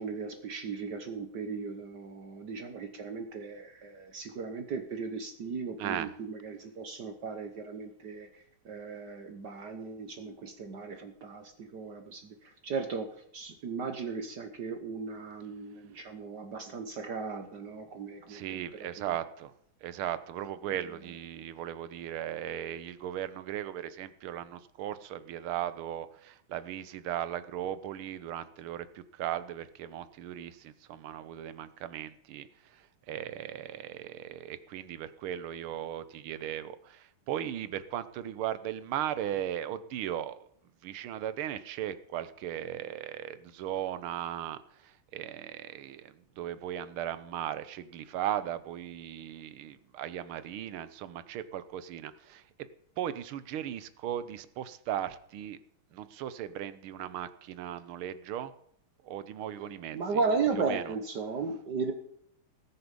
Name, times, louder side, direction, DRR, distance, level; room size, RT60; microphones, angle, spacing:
voice 1, 0.0-19.1 59.9-61.9, right 4 dB, 55° right, 6 dB, 1.6 m, -36 dB
voice 2, 5.8-6.1 18.3-19.5 19.8-40.5 40.8-52.4 53.0-55.6 55.9-58.5 59.0-60.2 60.7-60.9, right 11 dB, 75° right, 14 dB, 1.7 m, -37 dB
19.0 x 6.9 x 5.4 m, 0.70 s
omnidirectional pair, 2.4 m